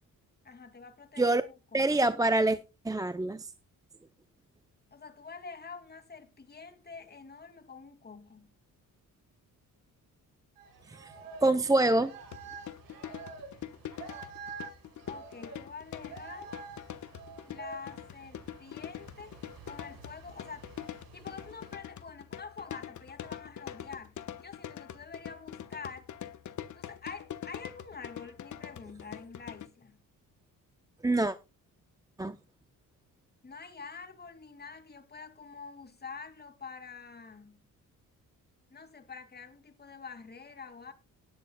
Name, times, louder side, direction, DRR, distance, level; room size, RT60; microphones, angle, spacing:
voice 1, 0.4-2.0 4.9-8.5 15.1-16.5 17.4-19.4 19.6-20.7 21.1-26.1 26.7-30.0 33.4-37.6 38.7-40.9, left 5 dB, 30° left, 2.5 m, -46 dB
voice 2, 1.7-2.6 2.8-3.5 10.9-11.1 11.4-12.1 31.0-31.3 32.2-32.4, right 2 dB, 10° right, 0.6 m, -25 dB
sound 1, 10.6-21.7, right 4 dB, 85° right, 5.5 m, -48 dB
sound 2, 12.3-29.7, left 10 dB, 60° left, 1.2 m, -44 dB
18.5 x 9.4 x 2.3 m
cardioid pair, 115°, 34 cm